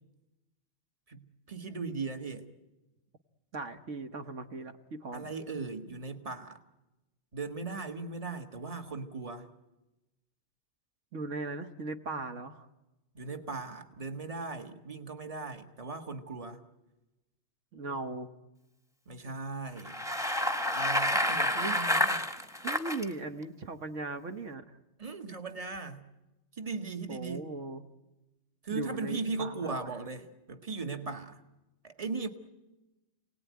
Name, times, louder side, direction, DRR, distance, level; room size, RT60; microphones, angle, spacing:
voice 1, 1.1-2.5 5.1-6.6 7.3-9.5 13.1-16.6 19.1-20.0 20.7-22.3 25.0-26.0 26.6-27.4 28.6-31.4 31.8-32.3, right 4 dB, 30° right, 6 dB, 1.7 m, -38 dB
voice 2, 3.5-5.3 11.1-12.7 17.7-18.3 21.5-21.8 22.6-24.8 27.1-27.8 28.7-29.9, right 3 dB, 80° right, 7 dB, 1.6 m, -38 dB
Bicycle, 19.8-23.0, left 1 dB, 5° right, 1.2 m, -29 dB
28.0 x 19.0 x 9.4 m, 1.0 s
omnidirectional pair, 1.2 m